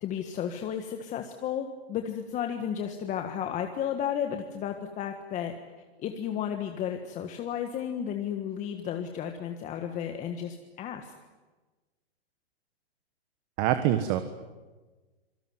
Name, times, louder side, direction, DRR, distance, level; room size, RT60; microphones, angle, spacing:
voice 1, 0.0-5.5 6.0-11.1, left 9 dB, 25° left, 5 dB, 1.6 m, -33 dB
voice 2, 13.6-14.2, right 12 dB, 35° right, 9 dB, 1.4 m, -24 dB
26.5 x 19.0 x 9.7 m, 1.3 s
hypercardioid pair, 140°, 32 cm